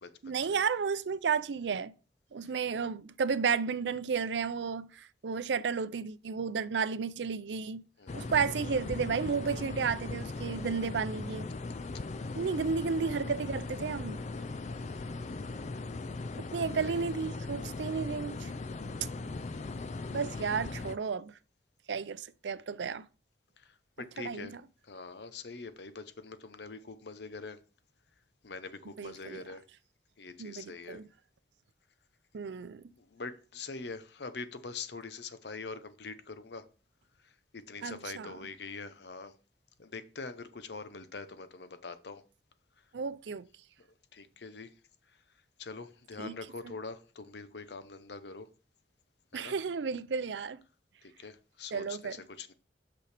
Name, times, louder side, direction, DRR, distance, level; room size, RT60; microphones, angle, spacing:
voice 1, 0.2-1.9 2.3-7.8 8.1-11.5 12.3-14.2 16.4-18.5 20.1-21.3 21.9-23.1 24.2-24.6 29.0-29.4 30.4-31.1 32.3-32.8 37.8-38.3 42.9-43.5 46.2-46.3 46.6-46.7 49.3-50.6 51.7-52.2, right 5 dB, 80° right, 0.5 m, -33 dB
voice 2, 8.0-8.3 12.2-12.6 14.6-15.6 16.7-17.0 19.9-20.0 23.6-24.6 24.8-27.6 28.4-29.6 30.2-31.0 33.0-36.7 37.5-39.3 39.8-42.2 43.8-43.9 44.1-44.7 45.6-48.5 49.3-49.5 51.0-52.5, left 4 dB, 65° left, 0.8 m, -44 dB
sound 1, 8.1-21.0, left 3 dB, 40° left, 0.4 m, -39 dB
8.3 x 6.1 x 3.4 m
head